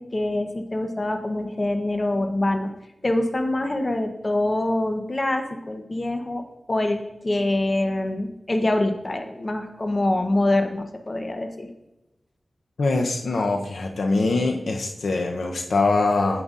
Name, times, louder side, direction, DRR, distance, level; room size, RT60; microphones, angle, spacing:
voice 1, 0.0-2.7 3.0-6.4 6.7-11.7, left 1 dB, 35° left, 6 dB, 0.8 m, -25 dB
voice 2, 12.8-16.4, left 3 dB, 80° left, 3 dB, 0.7 m, -23 dB
8.9 x 7.9 x 2.5 m, 0.93 s
wide cardioid pair, 65°, 0 cm